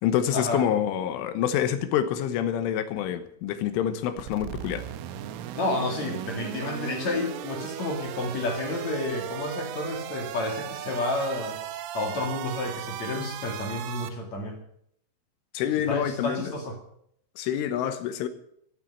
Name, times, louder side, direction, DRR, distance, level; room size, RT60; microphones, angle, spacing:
voice 1, 0.0-4.9 15.5-16.5 17.4-18.3, left 10 dB, 80° left, 3.5 m, -27 dB
sound 1, 4.2-14.1, right 12 dB, 85° right, 3.5 m, -37 dB
voice 2, 5.6-11.6 11.9-14.6 15.9-16.8, left 2 dB, 50° left, 2.5 m, -30 dB
14.0 x 9.0 x 9.6 m
omnidirectional pair, 5.7 m